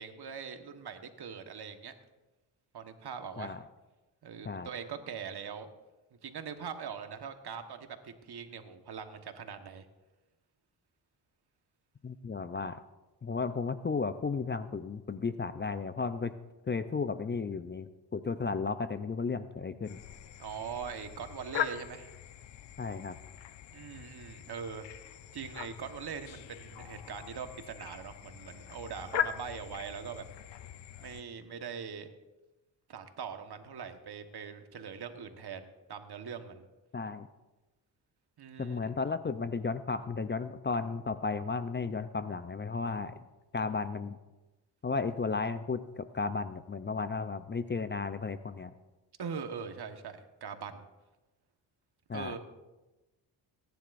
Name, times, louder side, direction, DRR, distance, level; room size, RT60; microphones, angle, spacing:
voice 1, 0.0-1.9 2.7-3.5 4.2-5.7 6.2-9.8 20.4-22.1 23.7-24.8 25.3-30.2 31.0-32.1 32.9-36.6 38.4-38.9 49.2-50.9 52.1-52.4, right 6 dB, 55° right, 7 dB, 1.5 m, -42 dB
voice 2, 12.0-12.8 13.2-16.3 16.7-20.0 22.8-23.1 36.9-37.3 38.6-43.2 43.5-44.2 44.8-48.7 52.1-52.3, left 4 dB, 25° left, 12 dB, 0.6 m, -34 dB
sound 1, 19.8-31.2, left 10 dB, 65° left, 0.8 m, -41 dB
19.5 x 10.5 x 2.6 m, 1.1 s
supercardioid pair, 55°, 46 cm